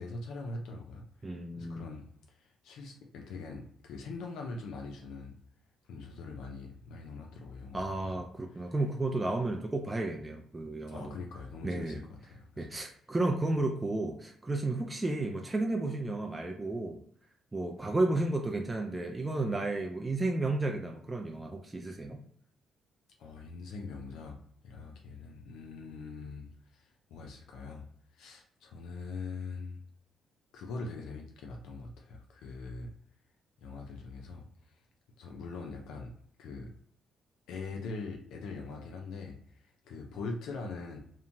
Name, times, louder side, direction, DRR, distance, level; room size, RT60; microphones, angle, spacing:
voice 1, 0.0-5.4 5.9-8.2 10.9-12.0 12.3-12.7 23.2-24.4 24.6-26.5 26.7-27.9 28.1-29.8 30.5-32.9 33.6-34.4 35.2-36.1 36.4-36.7 37.5-41.0, left 3 dB, 85° left, 1 dB, 0.4 m, -42 dB
voice 2, 1.2-1.9 7.7-11.1 11.6-12.0 12.6-17.0 17.5-22.2, right 2 dB, 20° right, 1 dB, 0.3 m, -32 dB
2.8 x 2.1 x 2.6 m, 0.62 s
cardioid pair, 90°, 0 cm